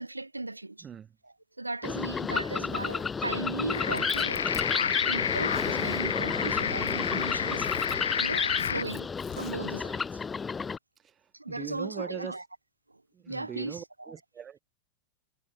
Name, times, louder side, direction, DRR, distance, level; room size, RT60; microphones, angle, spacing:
voice 1, 0.0-0.9 1.2-4.5 4.9-10.2 11.3-12.4 12.9-13.0 13.3-14.1, right 2 dB, 85° right, 3.8 m, -37 dB
sound 1, 1.8-10.8, left 5 dB, 15° left, 1.2 m, -32 dB
Zipper (clothing), 2.7-3.2 3.6-4.7 5.3-6.2 6.8-7.2 7.5-8.0 8.6-9.8, left 12 dB, 30° left, 2.5 m, -45 dB
sound 2, 3.7-8.8, left 7 dB, 70° left, 2.0 m, -30 dB
voice 2, 11.5-12.4 13.1-14.6, right 8 dB, 25° right, 1.8 m, -41 dB
figure-of-eight pair, 90°, 0 cm